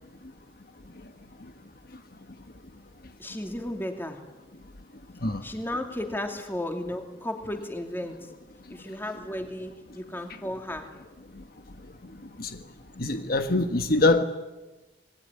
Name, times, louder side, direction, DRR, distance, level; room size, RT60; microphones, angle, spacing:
voice 1, 3.2-4.2 5.4-8.3 8.7-11.0, left 1 dB, 10° left, 4 dB, 2.8 m, -34 dB
voice 2, 13.0-14.2, left 2 dB, 55° left, 7 dB, 1.4 m, -23 dB
26.5 x 21.0 x 9.8 m, 1.2 s
head